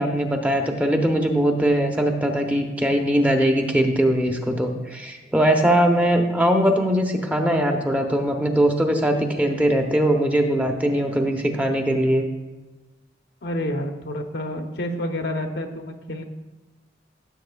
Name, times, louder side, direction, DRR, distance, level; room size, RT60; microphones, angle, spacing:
voice 1, 0.0-12.2, right 1 dB, 10° right, 3 dB, 0.8 m, -21 dB
voice 2, 13.4-16.2, left 1 dB, 65° left, 5 dB, 0.9 m, -29 dB
15.0 x 7.4 x 2.3 m, 1.2 s
head